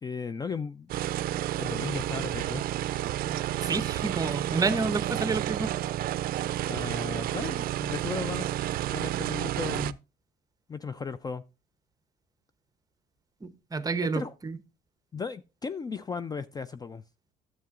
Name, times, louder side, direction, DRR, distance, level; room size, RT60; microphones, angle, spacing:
voice 1, 0.0-0.9 1.5-2.6 6.7-8.5 8.9-10.0 10.7-11.4 14.0-14.3 15.1-17.0, left 5 dB, 25° left, 0.4 m, -36 dB
sound 1, 0.9-9.9, right 13 dB, 60° right, 0.4 m, -31 dB
voice 2, 3.2-5.7 13.4-14.6, right 4 dB, 20° right, 0.8 m, -30 dB
10.5 x 7.6 x 2.4 m
cardioid pair, 110°, 17 cm